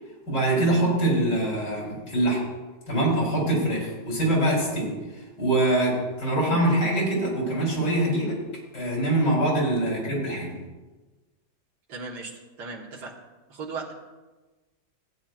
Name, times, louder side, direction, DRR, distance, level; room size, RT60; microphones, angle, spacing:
voice 1, 0.3-2.4 2.9-4.9 5.4-8.4 8.7-10.5, right 1 dB, 85° left, -3 dB, 3.9 m, -24 dB
voice 2, 11.9-13.1 13.5-13.9, right 4 dB, 80° right, 0 dB, 1.9 m, -37 dB
16.0 x 8.6 x 2.4 m, 1.2 s
omnidirectional pair, 1.8 m